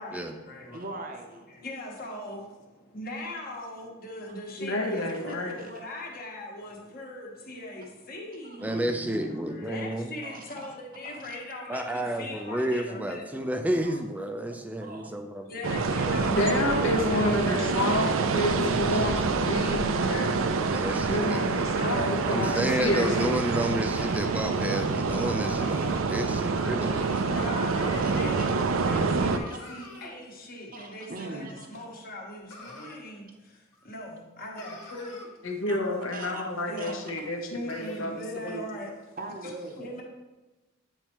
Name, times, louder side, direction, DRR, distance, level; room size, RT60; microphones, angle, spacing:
voice 1, 0.0-0.8 1.5-13.5 15.4-18.2 21.7-22.4 27.1-35.2 36.7-37.0 37.5-38.9 39.8-40.0, left 1 dB, 45° left, -1 dB, 1.2 m, -40 dB
voice 2, 0.7-1.5 5.6-5.7 8.4-9.4 10.2-10.8 11.0-11.4 13.8-14.0 14.8-15.2 19.6-20.0 20.6-20.7 22.4-23.1 23.8-24.1 27.2-27.4 28.0-28.4 29.5-29.6 30.7-31.9 35.7-35.8 36.1-36.4 36.8-36.9 39.2-39.9, right 2 dB, 40° right, 3 dB, 0.7 m, -41 dB
voice 3, 4.6-5.6 16.3-20.5 21.1-23.5 35.4-38.7, left 1 dB, 75° left, 3 dB, 1.0 m, -29 dB
voice 4, 8.6-10.1 11.7-15.5 18.9-19.1 20.7-21.6 22.3-27.3, right 1 dB, 5° right, 6 dB, 0.4 m, -31 dB
sound 1, 15.6-29.4, right 4 dB, 75° right, 0.5 m, -27 dB
sound 2, 22.3-22.5 23.1-23.3 24.0-24.2 25.1-26.0 26.6-27.3 27.8-28.4 29.3-30.1 31.7-31.8 32.5-33.0 33.7-33.8 34.2-34.3 34.6-35.3 37.0-37.1 37.7-38.0 38.5-38.6, left 2 dB, 90° left, 1.6 m, -46 dB
9.0 x 4.5 x 3.0 m, 1.1 s
head